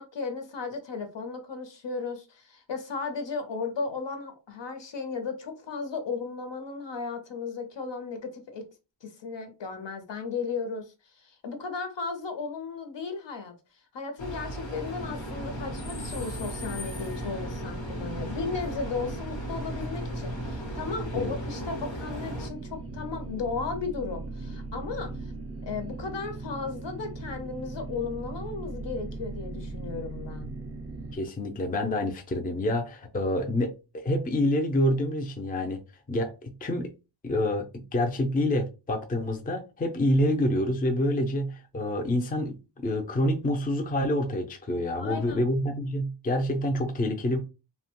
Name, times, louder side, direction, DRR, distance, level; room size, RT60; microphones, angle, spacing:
voice 1, 0.0-8.6 9.0-13.5 13.9-25.1 25.6-30.5 45.0-45.5, left 4 dB, 70° left, 0.8 m, -35 dB
sound 1, 14.2-22.5, equal, 90° left, 1.0 m, -37 dB
sound 2, 15.0-31.2, right 3 dB, 35° right, 0.5 m, -39 dB
voice 2, 31.1-35.8 36.1-36.9 37.2-47.4, left 1 dB, 20° left, 0.4 m, -27 dB
2.8 x 2.2 x 2.9 m
wide cardioid pair, 130°, 45 cm